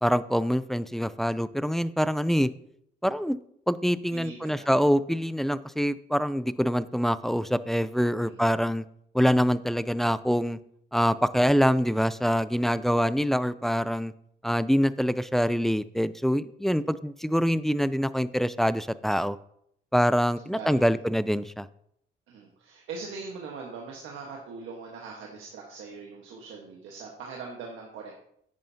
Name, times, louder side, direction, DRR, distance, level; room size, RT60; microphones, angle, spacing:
voice 1, 0.0-2.5 3.0-3.4 3.7-8.8 9.1-10.6 10.9-14.1 14.4-19.4 19.9-21.7, equal, ahead, 16 dB, 0.3 m, -25 dB
voice 2, 4.1-4.7 8.2-8.4 20.5-20.9 22.3-28.1, right 4 dB, 85° right, -1 dB, 1.4 m, -41 dB
10.5 x 9.1 x 2.8 m, 0.72 s
cardioid pair, 90°, 20 cm